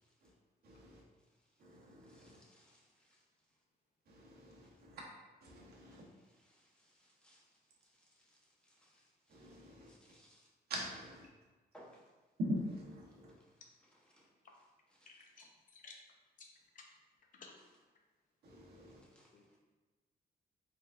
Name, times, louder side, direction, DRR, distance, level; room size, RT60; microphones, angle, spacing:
voice 1, 0.6-1.0 1.6-2.4 4.1-5.0 5.4-6.0 9.3-9.9 10.7-11.3 12.4-13.3 18.4-19.0, equal, 65° right, 1.0 m, -43 dB
voice 2, 2.0-3.2 5.9-6.0 6.4-7.4 7.8-10.5 11.7-12.0 14.1-14.3 15.0-15.1 19.0-19.3, equal, 5° left, 0.9 m, -65 dB
voice 3, 15.1-16.0 16.4-16.5 16.7-16.8 17.3-17.5 18.7-18.9 19.3-19.6, left 4 dB, 50° left, 0.7 m, -57 dB
4.6 x 3.7 x 2.5 m
cardioid pair, 140°, 17 cm